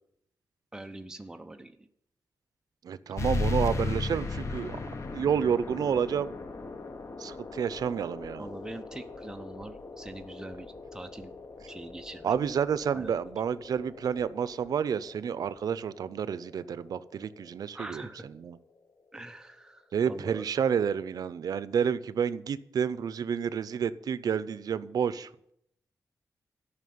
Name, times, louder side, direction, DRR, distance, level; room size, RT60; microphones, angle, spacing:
voice 1, 0.7-1.9 8.4-11.3 11.7-12.4 12.9-13.1 17.7-18.2 19.1-20.5, right 1 dB, 10° right, 0.9 m, -43 dB
voice 2, 2.8-4.8 5.1-6.4 7.2-8.5 12.2-18.0 18.4-18.6 19.9-25.3, right 7 dB, 85° right, 0.6 m, -30 dB
sound 1, 3.2-18.3, left 3 dB, 50° left, 1.3 m, -38 dB
13.0 x 5.8 x 9.3 m
wide cardioid pair, 115°, 6 cm